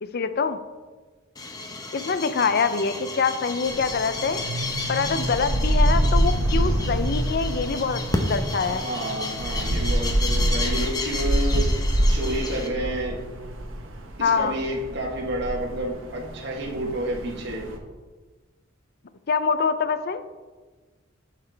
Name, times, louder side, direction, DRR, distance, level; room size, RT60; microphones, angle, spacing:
voice 1, 0.0-0.6 1.9-4.4 4.9-8.8 14.2-14.6 19.3-20.2, left 5 dB, 50° left, 12 dB, 0.5 m, -25 dB
sound 1, 1.4-12.7, left 2 dB, 20° left, 0.8 m, -32 dB
sound 2, 3.7-17.8, right 1 dB, 75° right, 1.0 m, -26 dB
voice 2, 8.7-11.6 12.1-13.2 14.2-17.7, right 1 dB, 60° right, -2 dB, 1.3 m, -30 dB
11.0 x 5.9 x 3.4 m, 1.3 s
head